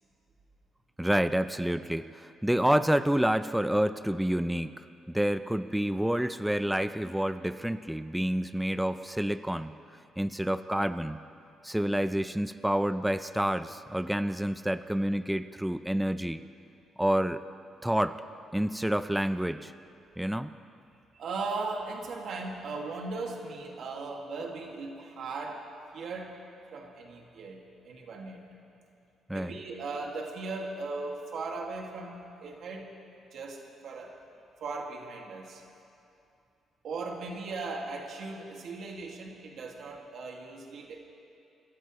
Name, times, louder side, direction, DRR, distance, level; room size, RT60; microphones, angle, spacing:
voice 1, 1.0-9.8 10.2-11.2 11.6-16.4 17.0-17.4 17.8-18.2 18.5-19.7 20.2-20.5 29.3-29.6, right 1 dB, 5° right, 11 dB, 0.5 m, -28 dB
voice 2, 21.1-25.7 25.9-26.5 26.7-28.4 29.3-32.9 33.3-34.2 34.6-35.6 36.8-41.0, right 3 dB, 65° right, 0 dB, 2.1 m, -38 dB
28.0 x 13.0 x 3.2 m, 2.7 s
cardioid pair, 90°, 0 cm